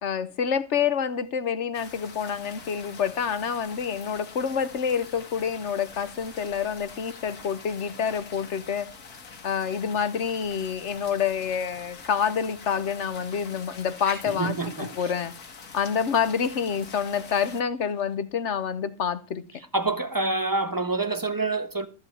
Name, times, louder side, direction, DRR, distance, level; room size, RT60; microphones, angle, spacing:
voice 1, 0.0-8.9 9.4-15.3 15.7-19.4, left 7 dB, 55° left, 1.3 m, -27 dB
sound 1, 1.7-17.6, left 5 dB, 85° left, 2.1 m, -45 dB
voice 2, 14.1-15.1 19.7-21.9, right 3 dB, 15° right, 1.0 m, -27 dB
14.0 x 5.6 x 8.6 m
omnidirectional pair, 1.5 m